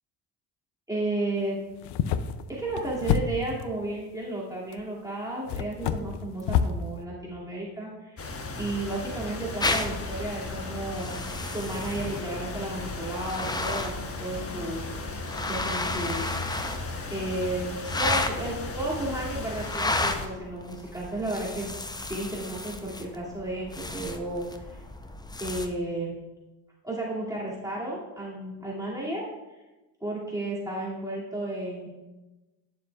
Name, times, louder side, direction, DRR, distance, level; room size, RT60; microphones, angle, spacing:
voice 1, 0.9-1.6 2.5-11.2 11.5-14.8 15.5-16.3 17.1-21.8 22.1-24.8 25.4-26.1 26.8-29.2 30.0-31.9, right 2 dB, 10° right, -6 dB, 2.4 m, -33 dB
sound 1, 1.7-3.7 4.7-4.8 5.5-6.8, left 8 dB, 65° left, 0.6 m, -28 dB
sound 2, 8.2-20.3, left 3 dB, 30° left, 1.1 m, -36 dB
sound 3, 9.6-25.7, left 2 dB, 10° left, 0.6 m, -34 dB
9.8 x 7.2 x 2.4 m, 1.1 s
supercardioid pair, 70°, 46 cm